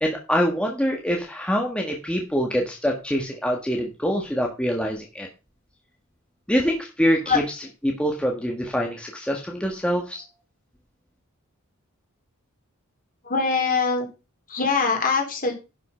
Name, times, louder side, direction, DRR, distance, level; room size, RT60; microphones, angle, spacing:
voice 1, 0.0-5.3 6.5-7.4 7.8-10.2, equal, 5° left, 0 dB, 1.5 m, -25 dB
voice 2, 13.2-14.1 14.5-15.5, left 4 dB, 40° left, 2 dB, 3.6 m, -22 dB
11.0 x 5.7 x 5.6 m, 0.31 s
head